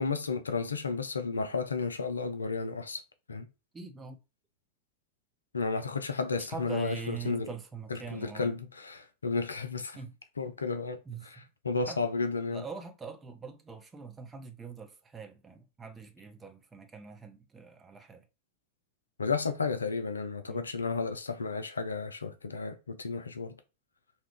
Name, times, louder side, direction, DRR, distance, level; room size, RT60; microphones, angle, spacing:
voice 1, 0.0-3.0 3.3-3.5 5.5-7.5 7.9-10.0 10.4-12.6 19.2-23.6, left 4 dB, 75° left, 0.4 m, -33 dB
voice 2, 3.7-4.2 6.5-8.5 9.9-10.1 11.1-11.3 11.9-12.0 12.5-18.3 20.5-20.7, right 5 dB, 15° right, 0.6 m, -43 dB
2.6 x 2.4 x 3.4 m
figure-of-eight pair, 90°, 0 cm